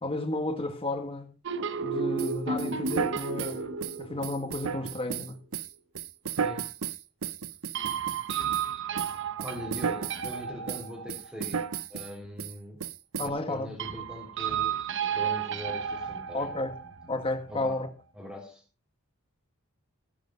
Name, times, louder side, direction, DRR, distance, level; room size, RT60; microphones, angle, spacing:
voice 1, 0.0-1.4 1.8-3.7 4.0-5.4 13.2-13.7 16.3-16.7 17.1-17.9, left 2 dB, 25° left, 1.8 m, -32 dB
sound 1, 1.5-5.0 7.8-11.4 13.8-17.8, right 7 dB, 60° right, 1.1 m, -33 dB
sound 2, 2.2-8.7 9.0-10.4 10.7-12.1 12.4-12.5 12.8-13.3, right 7 dB, 90° right, 0.8 m, -34 dB
voice 2, 6.3-6.7 9.4-12.8 13.2-16.5 17.5-17.8 18.1-18.6, equal, 5° right, 4.2 m, -42 dB
18.5 x 10.5 x 2.6 m
head